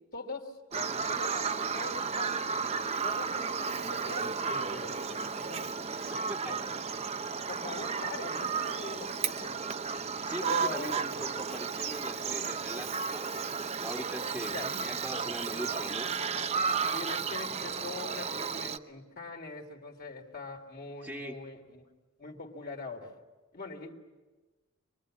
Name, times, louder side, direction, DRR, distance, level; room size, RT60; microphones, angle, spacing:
voice 1, 0.1-2.5 3.0-5.7 6.4-6.6 6.9-9.7 10.2-10.9 14.5-14.7 15.5-15.6 16.9-21.9 22.2-23.1 23.5-23.9, left 3 dB, 45° left, 3 dB, 3.0 m, -43 dB
Bird vocalization bird call bird song, 0.7-18.8, right 5 dB, 30° right, 0.8 m, -33 dB
voice 2, 6.1-6.5 10.2-13.3 13.8-14.6 14.8-16.3 21.0-21.4, right 1 dB, 5° right, -1 dB, 1.6 m, -41 dB
26.5 x 22.0 x 8.6 m, 1.2 s
head